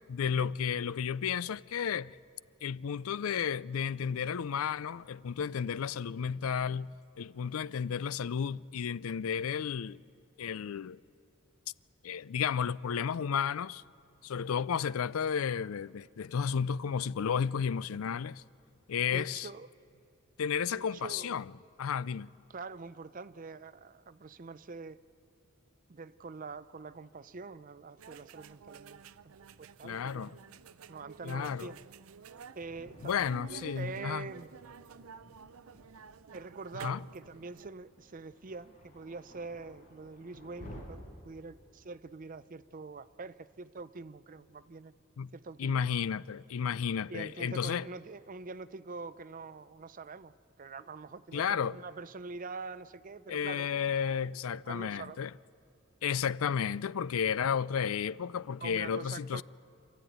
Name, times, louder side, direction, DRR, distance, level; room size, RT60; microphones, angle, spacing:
voice 1, 0.1-2.2 2.6-6.9 7.2-10.0 10.4-11.0 12.0-13.8 14.2-18.4 18.9-19.5 20.4-21.4 21.8-22.3 29.8-30.4 31.2-31.7 33.0-34.3 36.8-37.0 45.2-45.3 45.6-47.9 51.3-51.8 53.3-55.3 56.0-59.4, left 7 dB, 85° left, 0.4 m, -32 dB
voice 2, 19.1-19.7 20.6-21.4 22.5-25.0 25.9-30.3 30.9-31.8 32.5-33.1 33.5-34.5 36.3-44.9 45.3-45.8 47.1-53.7 54.7-55.2 58.6-59.4, right 4 dB, 40° right, 0.5 m, -45 dB
sound 1, 28.0-37.7, right 6 dB, 85° right, 0.5 m, -51 dB
Thunder, 32.2-40.8, equal, 35° left, 5.6 m, -55 dB
27.5 x 13.0 x 9.3 m
head